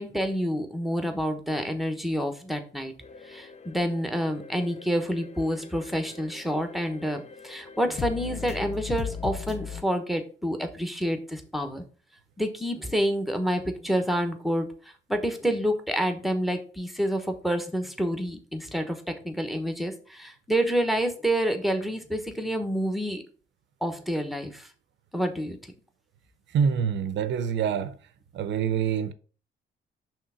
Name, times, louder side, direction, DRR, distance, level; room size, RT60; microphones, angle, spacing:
voice 1, 0.0-2.9 3.2-11.8 12.4-23.2 23.8-24.7 25.1-25.6, equal, ahead, 1.1 m, -28 dB
sound 1, 3.0-9.8, left 6 dB, 35° left, 0.6 m, -39 dB
voice 2, 26.5-27.9 28.3-29.1, right 7 dB, 65° right, 0.6 m, -26 dB
5.6 x 3.5 x 5.7 m
cardioid pair, 90°, 20 cm